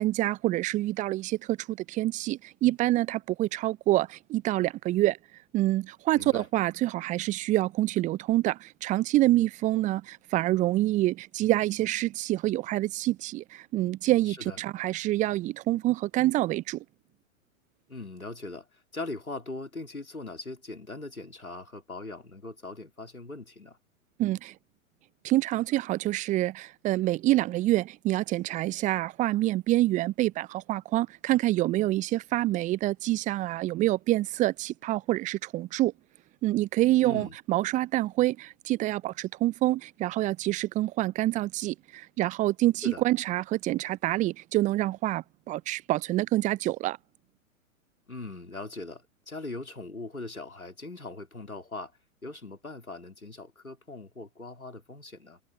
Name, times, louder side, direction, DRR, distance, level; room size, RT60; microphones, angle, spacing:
voice 1, 0.0-5.2 5.5-16.8 24.2-24.5 25.2-35.9 36.4-47.0, right 16 dB, 20° right, 0.8 m, -27 dB
voice 2, 6.1-6.5 14.3-14.6 17.9-23.8 37.0-37.4 42.8-43.0 48.1-51.9 52.2-55.4, left 2 dB, 85° left, 4.2 m, -40 dB
figure-of-eight pair, 105°, 41 cm